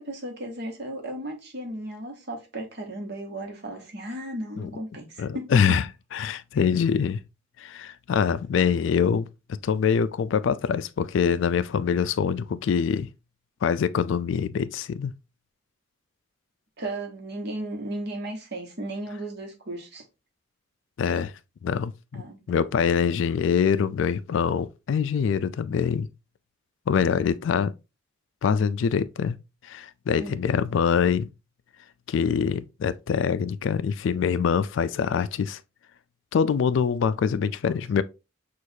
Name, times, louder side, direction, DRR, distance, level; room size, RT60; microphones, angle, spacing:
voice 1, 0.0-5.8 16.8-20.0 22.1-22.7 30.2-30.4 37.6-37.7, right 1 dB, 55° right, 1.2 m, -35 dB
voice 2, 5.2-5.8 6.1-7.2 7.6-13.1 13.6-15.1 21.0-21.3 21.6-26.1 26.9-27.7 28.4-29.4 29.6-31.3 32.1-35.6 36.3-38.0, left 6 dB, 65° left, 0.3 m, -24 dB
6.2 x 2.5 x 2.7 m
head